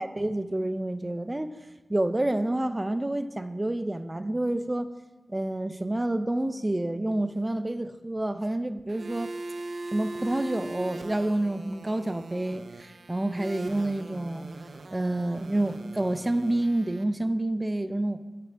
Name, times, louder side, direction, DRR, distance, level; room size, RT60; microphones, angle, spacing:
voice 1, 0.0-1.5 1.9-4.9 5.3-9.3 9.9-14.5 14.9-18.2, right 1 dB, 25° right, 11 dB, 0.5 m, -28 dB
sound 1, 8.9-17.0, right 2 dB, 90° right, 0.5 m, -40 dB
11.0 x 6.8 x 3.4 m, 1.2 s
wide cardioid pair, 80°, 0 cm